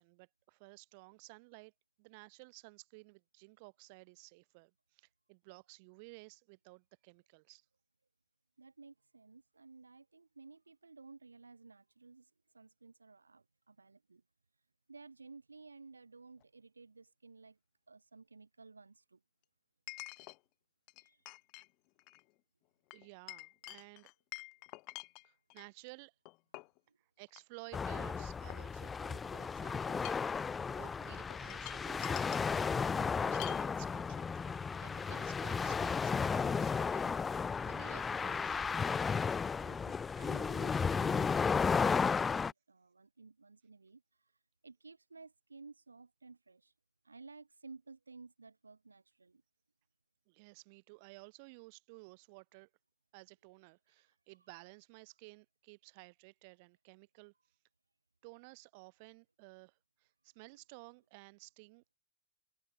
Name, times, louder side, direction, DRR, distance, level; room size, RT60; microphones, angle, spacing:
voice 1, 0.0-1.7 2.0-7.6 22.9-24.1 25.2-26.1 27.0-30.1 30.8-32.5 32.9-37.1 37.7-38.6 50.3-52.7 53.1-57.3 58.2-62.0, right 30 dB, 50° right, 2.8 m, -55 dB
voice 2, 8.6-14.2 14.9-17.6 17.9-19.2 21.0-21.2 26.9-27.0 39.4-44.3 44.6-46.7 47.0-49.4, right 4 dB, 85° right, 2.7 m, -56 dB
Chink clink, 16.4-16.5 19.9-20.4 20.9-21.7 22.0-22.2 22.9-25.7 26.3-26.8 27.3-27.4 27.7-29.2 29.9-30.4 31.3-32.5 33.3-33.7, left 28 dB, 50° left, 3.0 m, -49 dB
sound 1, 27.7-42.5, left 5 dB, 20° left, 0.3 m, -34 dB
figure-of-eight pair, 90°, 0 cm